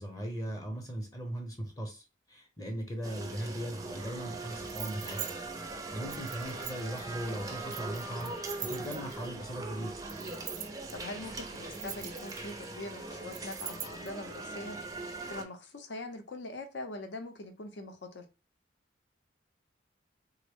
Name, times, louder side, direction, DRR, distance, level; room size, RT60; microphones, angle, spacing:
voice 1, 0.0-5.2 5.6-9.9, equal, 20° left, 0.6 m, -39 dB
sound 1, 3.0-15.4, right 2 dB, 20° right, 0.4 m, -41 dB
sound 2, 4.7-5.3 6.1-7.0 7.7-9.3 10.1-10.9 11.6-12.6 13.3-14.1, right 11 dB, 90° right, 0.4 m, -42 dB
voice 2, 10.9-14.8 15.3-18.2, left 2 dB, 75° left, 0.6 m, -43 dB
3.4 x 2.0 x 3.4 m
head